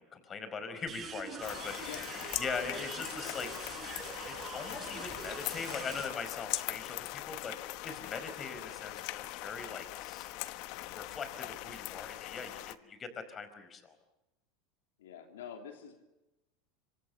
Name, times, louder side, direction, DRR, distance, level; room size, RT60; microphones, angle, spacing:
voice 1, 0.0-2.0 2.4-3.7 4.3-10.3 10.7-14.0, left 5 dB, 30° left, 10 dB, 4.8 m, -41 dB
sound 1, 0.9-6.1, right 6 dB, 30° right, 7.1 m, -44 dB
sound 2, 1.4-12.7, left 18 dB, 60° left, 1.2 m, -41 dB
voice 2, 1.8-2.1 15.0-16.0, left 7 dB, 85° left, 5 dB, 3.1 m, -46 dB
26.0 x 25.5 x 7.2 m, 1.0 s
hypercardioid pair, 95°, 0 cm